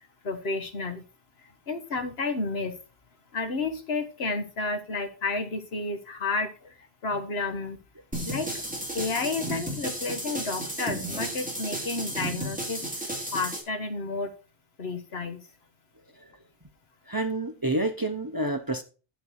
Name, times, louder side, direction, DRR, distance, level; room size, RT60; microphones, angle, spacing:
voice 1, 0.2-1.0 1.7-2.7 3.3-6.7 7.0-7.8 8.2-8.5 8.9-12.8 13.3-14.3 14.8-15.4, left 3 dB, 75° left, 1.5 m, -31 dB
sound 1, 8.1-13.6, right 1 dB, 5° right, 2.3 m, -33 dB
voice 2, 17.1-18.8, right 2 dB, 25° right, 0.7 m, -28 dB
11.5 x 4.2 x 6.3 m
omnidirectional pair, 1.1 m